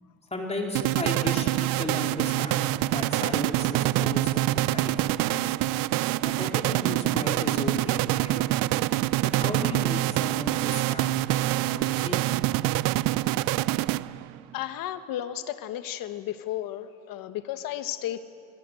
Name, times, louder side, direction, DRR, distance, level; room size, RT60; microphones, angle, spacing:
voice 1, 0.3-5.5 6.2-8.4 9.3-12.4, left 2 dB, 20° left, 0 dB, 3.9 m, -35 dB
sound 1, 0.7-14.4, right 17 dB, 80° right, 0.6 m, -26 dB
voice 2, 14.5-18.2, left 12 dB, 75° left, 10 dB, 1.5 m, -33 dB
27.0 x 23.0 x 7.8 m, 2.8 s
cardioid pair, 100°, 34 cm